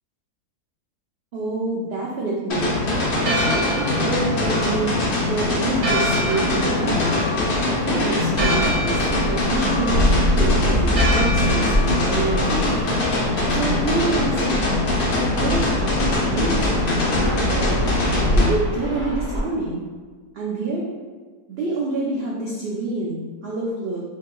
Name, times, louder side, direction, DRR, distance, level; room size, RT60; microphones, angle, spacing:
voice 1, 1.3-2.7 3.2-4.9 5.2-7.1 7.8-12.8 13.5-14.6 15.2-16.5 17.1-17.8 18.3-19.8 20.3-20.8 21.5-24.0, right 3 dB, 85° right, -5 dB, 0.5 m, -27 dB
sound 1, 2.5-18.5, left 2 dB, 55° left, 0.6 m, -22 dB
Church bell, 2.9-13.1, right 1 dB, 60° right, 0.8 m, -29 dB
Fixed-wing aircraft airplane, 8.4-19.4, equal, 20° left, 1.5 m, -25 dB
2.8 x 2.8 x 3.7 m, 1.4 s
omnidirectional pair, 1.7 m